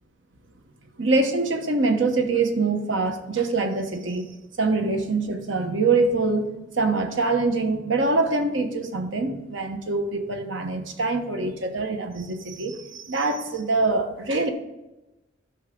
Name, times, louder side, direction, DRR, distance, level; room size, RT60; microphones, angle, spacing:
voice 1, 1.0-14.5, right 3 dB, 85° right, 6 dB, 1.0 m, -24 dB
13.0 x 5.8 x 3.8 m, 1.0 s
head